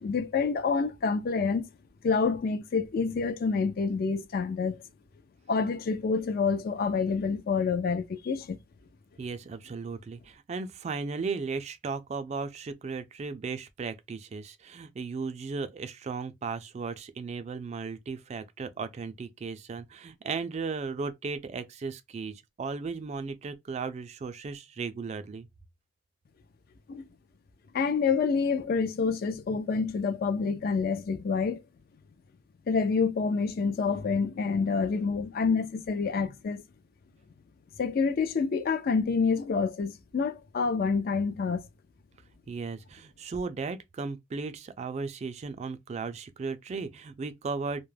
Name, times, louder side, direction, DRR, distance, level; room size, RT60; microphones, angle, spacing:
voice 1, 0.0-1.7 2.0-4.8 5.5-8.6 26.9-27.0 27.7-31.6 32.7-36.6 37.8-41.6, left 5 dB, 50° left, 0.4 m, -27 dB
voice 2, 9.2-25.5 42.5-47.8, right 4 dB, 35° right, 0.3 m, -36 dB
2.2 x 2.1 x 3.1 m
head